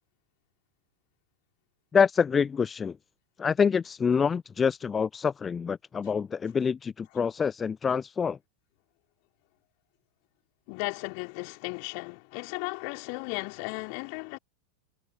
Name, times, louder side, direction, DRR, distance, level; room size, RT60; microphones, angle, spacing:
voice 1, 1.9-3.0 3.4-8.4, left 6 dB, 20° left, 0.7 m, -26 dB
voice 2, 10.7-14.4, left 40 dB or more, 45° left, 4.7 m, -35 dB
figure-of-eight pair, 90°, 0 cm